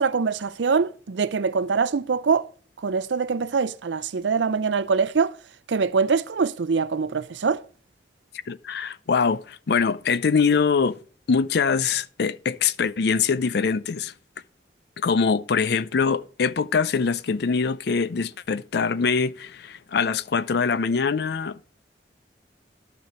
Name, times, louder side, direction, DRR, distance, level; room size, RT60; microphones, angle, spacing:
voice 1, 0.0-2.5 2.8-5.4 5.7-7.6, right 5 dB, 90° right, 0.5 m, -23 dB
voice 2, 8.5-11.0 11.3-14.1 15.0-21.6, left 5 dB, 65° left, 0.5 m, -23 dB
11.5 x 6.6 x 4.4 m
head